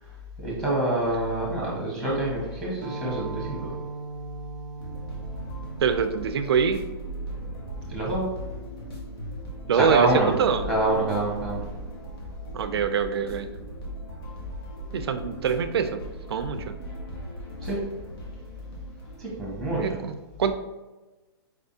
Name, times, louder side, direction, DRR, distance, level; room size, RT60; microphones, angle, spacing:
voice 1, 0.4-3.7 7.9-8.3 9.7-10.3 10.6-11.6 17.6-17.8 19.2-20.0, right 2 dB, 5° left, -6 dB, 1.2 m, -26 dB
sound 1, 2.8-8.0, right 3 dB, 30° right, 0.5 m, -39 dB
sound 2, 4.8-19.2, right 1 dB, 70° left, 1.4 m, -38 dB
voice 2, 5.8-6.8 9.7-10.7 12.5-13.5 14.9-16.0 16.3-16.7 19.7-20.5, right 6 dB, 85° right, 9 dB, 0.4 m, -25 dB
4.8 x 3.4 x 2.7 m, 1.2 s
hypercardioid pair, 160°, 13 cm